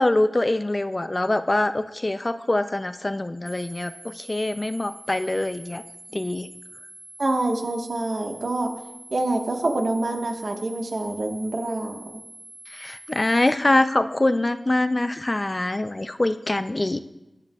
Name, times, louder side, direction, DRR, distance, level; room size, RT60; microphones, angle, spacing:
voice 1, 0.0-5.8 6.1-6.5 12.7-17.0, left 2 dB, 35° left, 10 dB, 0.5 m, -24 dB
sound 1, 3.5-13.5, right 1 dB, 10° right, 4.4 m, -45 dB
voice 2, 7.2-8.7 9.1-12.0, right 2 dB, 70° right, 2 dB, 1.4 m, -26 dB
19.0 x 10.5 x 2.4 m, 0.95 s
wide cardioid pair, 70°, 0 cm